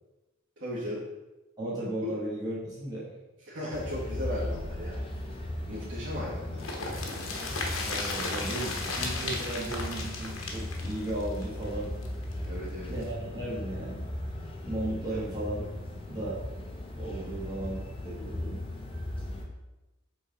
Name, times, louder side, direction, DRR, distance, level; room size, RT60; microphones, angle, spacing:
voice 1, 0.6-1.0 2.0-2.1 3.5-5.0 5.7-7.2 12.4-12.9 17.2-17.5, left 1 dB, 60° right, -11 dB, 2.0 m, -37 dB
voice 2, 1.6-3.1 7.8-11.9 12.9-14.0 14.6-15.6 16.1-16.4 17.0-17.8 18.0-18.6, right 1 dB, 20° right, -8 dB, 1.7 m, -35 dB
sound 1, 3.7-19.4, left 1 dB, 25° left, 0.9 m, -37 dB
sound 2, 6.6-12.3 12.6-12.7 13.0-13.1, left 3 dB, 80° left, 1.1 m, -35 dB
6.1 x 4.0 x 4.2 m, 1.0 s
head